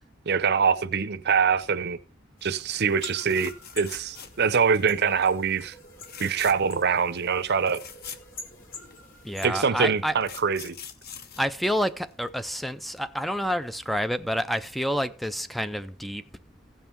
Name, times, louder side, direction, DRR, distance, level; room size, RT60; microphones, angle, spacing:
voice 1, 0.3-2.0 2.4-3.5 3.8-5.7 6.2-7.8 9.4-10.7, right 6 dB, 50° right, 0.7 m, -24 dB
sound 1, 2.4-9.5, left 3 dB, 65° left, 3.2 m, -46 dB
sound 2, 3.0-4.6 5.0-5.3 5.9-6.8 7.2-7.3 7.5-9.0 9.8-12.3 14.2-14.4 14.7-14.8, left 7 dB, 45° left, 1.0 m, -44 dB
voice 2, 9.2-10.2 11.4-16.2, equal, ahead, 0.4 m, -28 dB
16.0 x 5.5 x 4.4 m
head